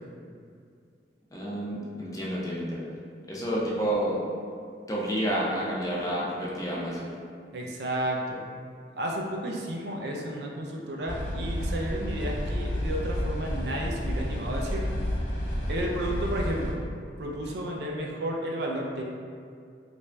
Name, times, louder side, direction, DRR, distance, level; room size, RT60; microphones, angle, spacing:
voice 1, 1.3-2.8 3.3-4.2 4.9-7.1, right 1 dB, 20° left, -5 dB, 0.5 m, -29 dB
voice 2, 7.5-8.4 8.9-14.9 15.7-16.8 17.2-19.0, right 1 dB, 65° right, -1 dB, 0.4 m, -32 dB
sound 1, 11.1-16.7, equal, 70° left, 1.1 m, -30 dB
3.2 x 2.5 x 3.3 m, 2.3 s
head